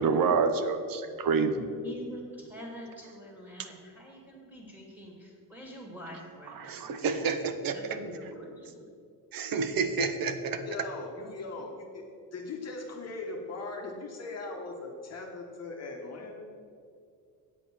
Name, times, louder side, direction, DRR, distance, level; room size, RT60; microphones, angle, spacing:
voice 1, 0.0-1.5 6.6-8.0 9.3-10.6, right 5 dB, 60° right, 9 dB, 0.9 m, -28 dB
voice 2, 1.8-7.4 7.7-8.9, right 1 dB, 5° right, -3 dB, 2.1 m, -45 dB
voice 3, 10.6-12.0 12.3-16.4, left 3 dB, 40° left, 0 dB, 1.1 m, -39 dB
8.4 x 7.8 x 6.0 m, 2.3 s
cardioid pair, 140°, 40 cm